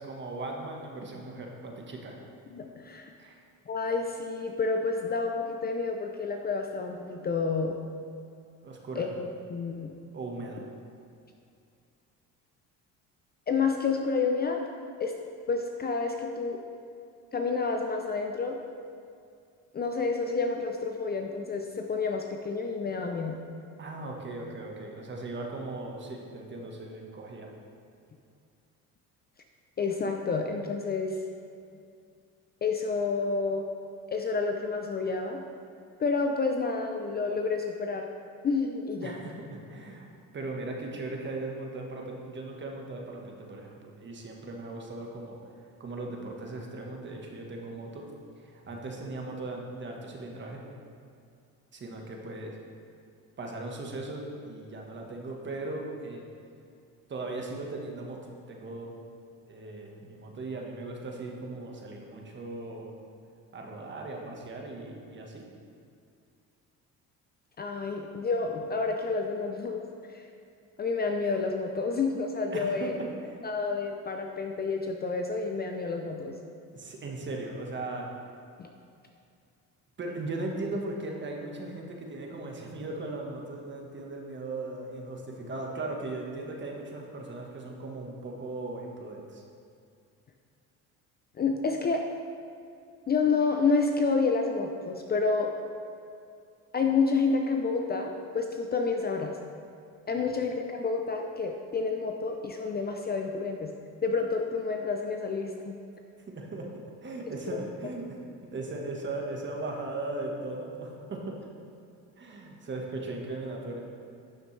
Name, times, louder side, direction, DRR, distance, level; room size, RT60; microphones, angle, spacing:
voice 1, 0.0-2.2 3.2-3.4 8.6-9.1 10.1-10.6 23.8-27.5 39.0-40.1 40.3-48.0 48.4-50.6 51.7-52.6 53.4-56.3 57.1-58.2 58.5-58.9 59.5-62.9 63.5-65.4 72.5-72.9 73.2-73.4 76.7-78.1 80.0-89.4 100.2-100.4 106.3-108.2 108.5-111.5 112.2-113.8, right 2 dB, 30° right, 0 dB, 1.4 m, -38 dB
voice 2, 2.5-3.1 3.7-7.7 9.0-9.9 13.5-14.6 15.0-15.1 15.5-16.6 17.3-18.6 19.7-23.4 29.8-31.2 32.6-33.6 34.1-35.4 36.0-38.1 38.4-39.2 67.6-69.8 70.1-70.3 70.8-72.9 73.4-76.3 78.6-78.7 91.4-92.0 93.1-95.5 96.7-99.4 100.1-103.7 104.0-105.8, left 4 dB, 30° left, 3 dB, 0.5 m, -29 dB
11.5 x 6.5 x 3.3 m, 2.4 s
cardioid pair, 120°, 35 cm